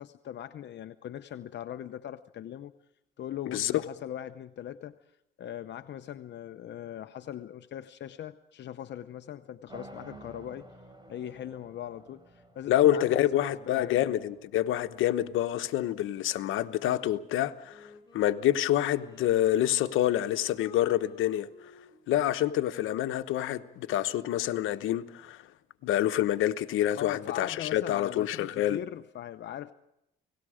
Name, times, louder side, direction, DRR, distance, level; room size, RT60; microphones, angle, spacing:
voice 1, 0.0-2.7 3.2-5.0 5.4-10.7 11.1-14.0 26.9-29.7, left 11 dB, 65° left, 0.8 m, -40 dB
sound 1, 9.7-15.8, right 2 dB, 20° right, 3.7 m, -52 dB
voice 2, 12.7-21.7 22.1-25.4 25.8-28.8, left 12 dB, 85° left, 1.1 m, -27 dB
Wind instrument woodwind instrument, 17.6-24.3, left 4 dB, 20° left, 8.0 m, -53 dB
29.5 x 19.0 x 5.0 m
cardioid pair, 90°, 20 cm